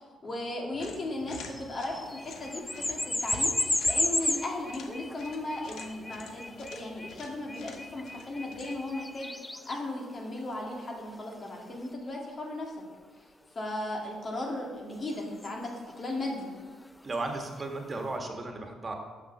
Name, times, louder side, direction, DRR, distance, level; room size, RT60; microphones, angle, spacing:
voice 1, 0.0-12.7 13.6-16.5, left 1 dB, 45° left, 0 dB, 2.0 m, -36 dB
sound 1, 0.7-9.0, left 4 dB, 75° left, 0.8 m, -48 dB
sound 2, 1.3-11.9 13.7-13.8 14.9-17.9, left 1 dB, 15° left, 0.4 m, -34 dB
voice 2, 17.0-18.9, right 2 dB, 35° right, 3 dB, 1.5 m, -35 dB
6.1 x 6.0 x 5.7 m, 1.5 s
supercardioid pair, 60°, 0 cm